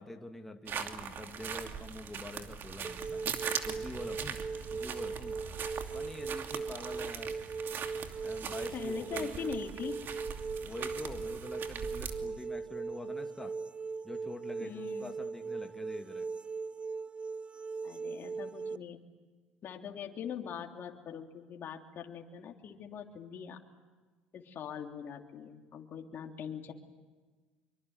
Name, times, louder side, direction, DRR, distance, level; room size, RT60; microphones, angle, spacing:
voice 1, 0.0-3.2 3.6-4.4 4.7-5.4 5.9-7.3 8.2-9.5 10.6-13.5 14.0-16.3, left 1 dB, 10° left, 4 dB, 2.5 m, -45 dB
sound 1, 0.7-12.3, right 7 dB, 50° right, 2.7 m, -41 dB
sound 2, 2.8-18.8, right 4 dB, 25° right, 0.8 m, -39 dB
voice 2, 8.4-10.1 14.6-15.1 17.8-19.0 19.6-23.6 24.3-26.7, left 8 dB, 50° left, 2 dB, 3.1 m, -42 dB
25.5 x 24.0 x 9.5 m, 1.3 s
hypercardioid pair, 75°, 5 cm